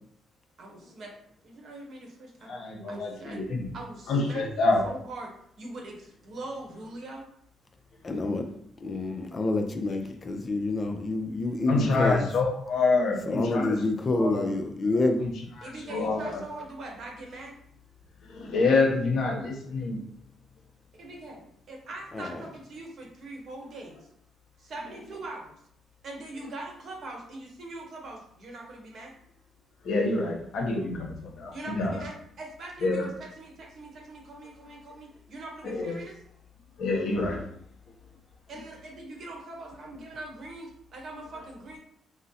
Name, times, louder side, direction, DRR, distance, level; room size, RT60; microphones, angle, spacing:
voice 1, 0.6-1.1 1.4-2.6 2.9-3.4 3.7-7.2 15.6-17.5 21.0-21.4 21.7-24.1 24.6-25.5 26.0-29.1 31.5-36.2 38.5-41.8, right 2 dB, 60° right, 0 dB, 0.9 m, -42 dB
voice 2, 2.4-3.7 4.1-4.8 11.7-13.7 14.2-14.4 15.6-16.4 18.3-20.0 29.8-31.9 32.8-33.1 35.6-35.9 36.8-37.4, left 3 dB, 70° left, 0 dB, 0.8 m, -27 dB
voice 3, 8.0-8.5 8.8-12.3 13.3-15.2 22.1-22.4, left 2 dB, 35° left, 5 dB, 0.4 m, -28 dB
3.7 x 2.0 x 2.7 m, 0.69 s
cardioid pair, 90°, 0 cm